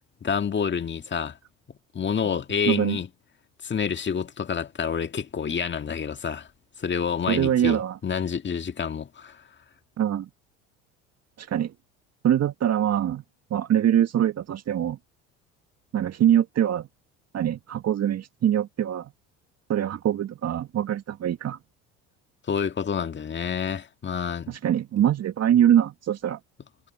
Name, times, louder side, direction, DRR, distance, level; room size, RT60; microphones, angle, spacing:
voice 1, 0.2-1.4 1.9-3.1 3.6-6.5 6.8-9.4 22.5-24.5, left 7 dB, 30° left, 1.9 m, -28 dB
voice 2, 2.7-3.0 7.3-8.0 10.0-10.3 11.4-11.7 12.2-13.2 13.5-15.0 15.9-16.9 17.3-19.1 19.7-21.6 24.5-26.4, right 10 dB, 45° right, 1.8 m, -23 dB
hypercardioid pair, 75°, 37 cm